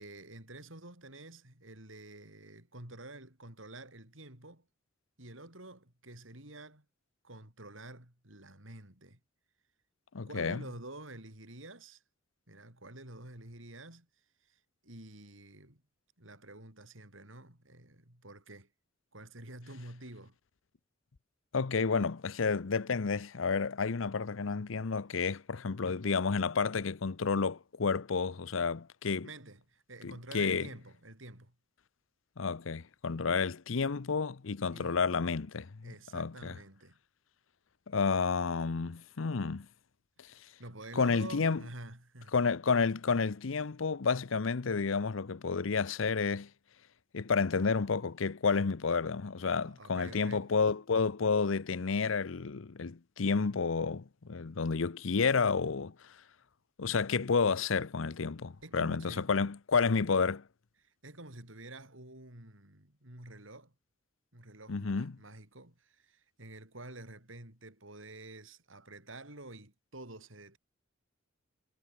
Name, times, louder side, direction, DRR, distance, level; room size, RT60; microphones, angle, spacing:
voice 1, 0.0-4.7 5.2-6.8 7.2-9.2 10.2-12.0 12.5-15.8 16.2-18.7 19.1-20.4 29.2-31.5 34.7-35.0 35.8-37.0 40.2-42.3 49.6-50.5 58.6-59.3 60.0-60.1 60.8-63.7 64.3-70.6, right 2 dB, 75° right, 6.7 m, -49 dB
voice 2, 10.1-10.6 21.5-29.3 30.0-30.7 32.4-36.5 37.9-39.7 41.0-41.6 42.3-46.5 47.1-55.9 56.8-60.4 64.7-65.1, left 5 dB, 80° left, 0.7 m, -30 dB
head